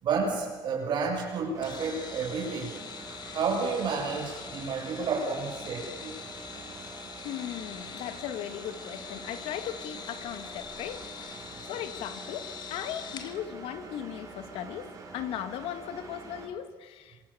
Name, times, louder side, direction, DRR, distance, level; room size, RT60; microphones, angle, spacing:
voice 1, 0.0-2.8 3.3-6.2 6.7-6.8, right 5 dB, 55° right, 0 dB, 6.7 m, -31 dB
Engine, 1.5-16.4, right 3 dB, 35° right, 5.9 m, -46 dB
sound 1, 1.6-13.4, left 7 dB, 50° left, 2.4 m, -44 dB
voice 2, 7.2-17.2, left 10 dB, 80° left, 10 dB, 2.2 m, -38 dB
28.0 x 25.0 x 7.2 m, 1.3 s
cardioid pair, 130°, 9 cm